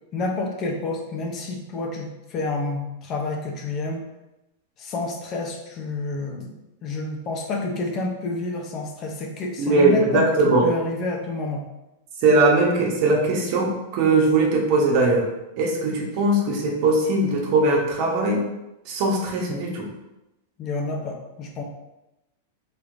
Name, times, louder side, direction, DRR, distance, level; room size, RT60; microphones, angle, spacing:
voice 1, 0.1-4.1 4.8-10.3 10.6-11.6 20.6-21.6, left 3 dB, 35° left, 2 dB, 0.7 m, -29 dB
voice 2, 9.6-10.6 12.2-15.3 15.6-18.4 18.8-19.9, right 2 dB, 50° right, -1 dB, 1.1 m, -20 dB
4.4 x 3.4 x 2.6 m, 0.95 s
hypercardioid pair, 130°, 0 cm